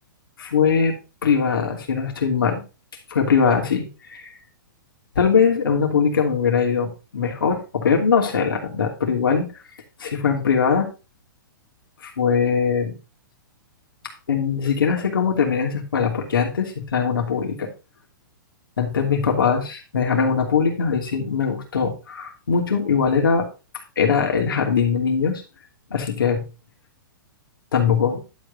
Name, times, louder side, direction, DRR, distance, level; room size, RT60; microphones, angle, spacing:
voice 1, 0.4-2.6 3.1-4.3 5.1-9.5 10.0-10.9 12.0-12.9 14.3-17.7 18.8-23.5 23.7-25.4 25.9-26.5 27.7-28.2, left 6 dB, 85° left, 2 dB, 2.9 m, -21 dB
11.0 x 5.3 x 4.0 m, 0.30 s
hypercardioid pair, 130°, 11 cm